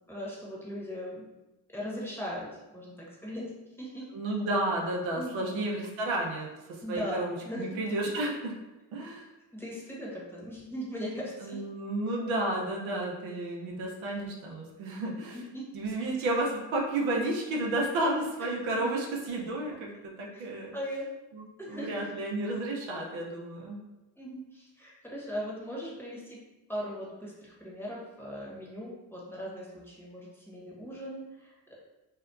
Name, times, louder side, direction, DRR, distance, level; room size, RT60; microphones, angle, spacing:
voice 1, 0.1-1.3 1.7-4.1 5.1-5.4 6.8-7.7 9.5-11.6 15.3-15.7 18.7-18.9 19.7-19.8 20.3-20.5 20.7-21.1 21.6-21.9 24.2-26.4 26.7-31.7, equal, 5° left, -6 dB, 1.0 m, -39 dB
voice 2, 4.1-8.5 8.9-9.3 11.4-15.4 15.7-19.9 20.2-20.7 21.3-23.8, right 2 dB, 70° right, -1 dB, 0.7 m, -32 dB
2.7 x 2.2 x 2.3 m, 1.0 s
supercardioid pair, 50°, 49 cm